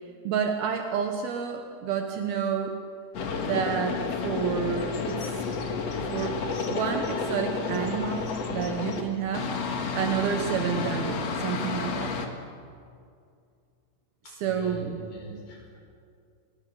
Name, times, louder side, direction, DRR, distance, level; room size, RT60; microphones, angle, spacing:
voice 1, 0.2-2.7 3.4-5.5 6.0-6.3 6.7-9.5 9.9-12.1 14.4-15.0, right 7 dB, 70° right, 4 dB, 2.9 m, -29 dB
sound 1, 3.1-9.0 9.3-12.3, left 4 dB, 50° left, 2.3 m, -31 dB
voice 2, 14.2-15.8, right 1 dB, 85° left, 0 dB, 7.0 m, -42 dB
26.0 x 20.5 x 7.0 m, 2.3 s
omnidirectional pair, 4.9 m